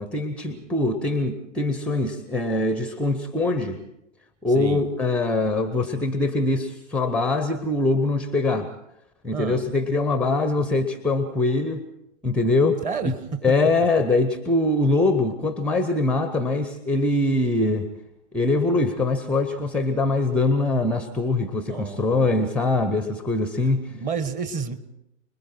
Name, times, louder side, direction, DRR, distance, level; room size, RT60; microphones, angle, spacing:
voice 1, 0.0-3.8 4.4-8.7 9.2-11.8 12.2-13.1 13.4-17.9 18.3-23.9, left 2 dB, 5° left, 10 dB, 0.7 m, -23 dB
voice 2, 4.5-4.9 9.3-9.6 12.8-13.2 13.5-13.6 21.5-22.3 23.6-24.7, right 5 dB, 20° right, 9 dB, 1.5 m, -31 dB
29.5 x 21.0 x 4.4 m, 0.88 s
figure-of-eight pair, 110°, 37 cm